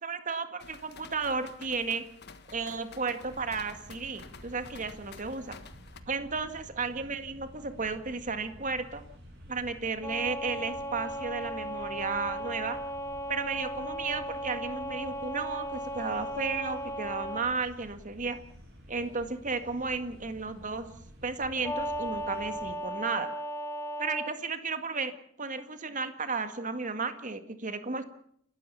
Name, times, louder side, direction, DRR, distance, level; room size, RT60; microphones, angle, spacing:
voice 1, 0.0-2.0 2.5-5.6 6.1-9.0 9.5-12.8 13.3-18.4 18.9-20.9 21.2-23.3 24.0-25.1 25.4-28.0, right 4 dB, 40° right, 9 dB, 1.9 m, -33 dB
sound 1, 0.6-6.0, left 4 dB, 55° left, 1.5 m, -50 dB
sound 2, 3.2-22.7, equal, 60° right, 7.5 m, -51 dB
sound 3, 10.0-17.5 21.6-24.3, equal, 15° left, 1.6 m, -36 dB
30.0 x 13.5 x 7.0 m, 0.66 s
head